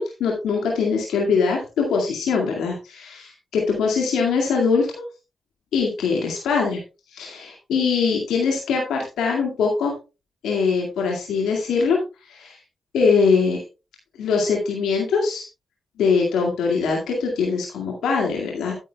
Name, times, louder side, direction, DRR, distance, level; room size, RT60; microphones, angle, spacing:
voice 1, 0.0-4.9 5.7-6.8 7.1-9.9 10.4-12.0 12.3-12.6 12.9-13.6 14.2-15.5 16.0-18.7, left 5 dB, 90° left, -1 dB, 2.1 m, -22 dB
13.5 x 8.9 x 2.3 m, 0.29 s
supercardioid pair, 50°, 0 cm